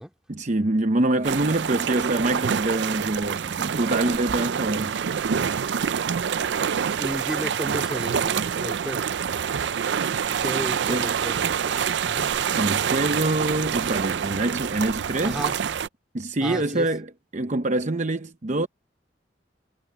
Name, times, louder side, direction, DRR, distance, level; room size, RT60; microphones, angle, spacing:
voice 1, 0.3-4.9 10.9-11.1 12.6-15.4 16.1-17.1 17.3-18.7, right 2 dB, 45° right, 0.8 m, -25 dB
sound 1, 1.2-15.9, right 7 dB, 85° right, 0.4 m, -26 dB
voice 2, 7.0-9.1 10.4-12.3 15.2-15.5 16.4-16.9, equal, 5° right, 3.3 m, -33 dB
head